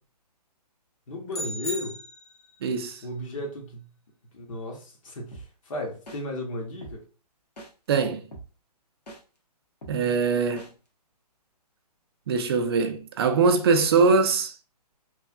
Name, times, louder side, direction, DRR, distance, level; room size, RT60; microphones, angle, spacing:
voice 1, 1.1-2.0 3.0-3.9 4.3-7.0, left 2 dB, 55° left, 0.9 m, -35 dB
sound 1, 1.3-2.6, equal, 25° left, 0.5 m, -36 dB
voice 2, 2.6-3.0 7.9-8.2 9.9-10.7 12.3-14.5, right 4 dB, 40° right, 0.5 m, -22 dB
sound 2, 5.3-5.4 6.1-6.2 6.8-6.9 7.6-7.7 8.3-8.4 9.1-9.2 9.8-9.9 10.6-10.7, right 2 dB, 80° left, 1.1 m, -41 dB
3.1 x 2.4 x 2.4 m
figure-of-eight pair, 135°, 21 cm